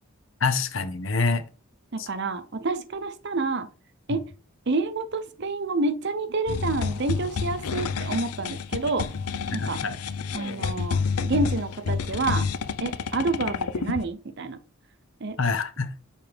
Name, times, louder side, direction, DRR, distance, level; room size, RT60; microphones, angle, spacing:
voice 1, 0.4-1.4 2.0-2.1 4.1-4.2 9.5-10.0 15.4-15.9, left 4 dB, 60° left, 0.8 m, -26 dB
voice 2, 1.9-3.7 4.1-4.3 4.7-9.1 9.5-9.8 10.3-12.5 12.8-14.6 15.2-15.4, right 3 dB, 50° right, 0.7 m, -28 dB
sound 1, 6.5-14.0, left 5 dB, 90° left, 0.5 m, -29 dB
7.0 x 4.5 x 3.4 m
head